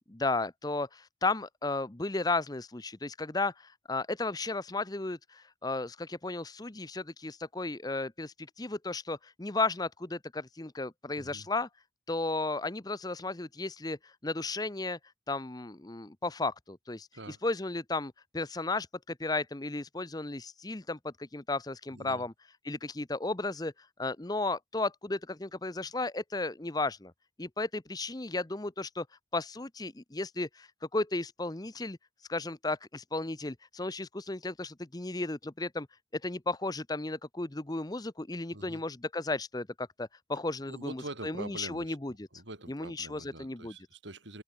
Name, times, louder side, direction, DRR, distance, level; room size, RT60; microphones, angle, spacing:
voice 1, 0.1-11.7 12.1-15.0 15.3-22.3 22.6-23.7 24.0-27.1 27.4-29.1 29.3-32.0 32.3-35.9 36.1-42.1 42.7-43.7, left 2 dB, 20° left, 0.8 m, -34 dB
voice 2, 11.2-11.5 17.1-17.4 21.9-22.2 38.5-38.8 40.7-44.4, right 2 dB, 70° right, 6.0 m, -45 dB
open air
head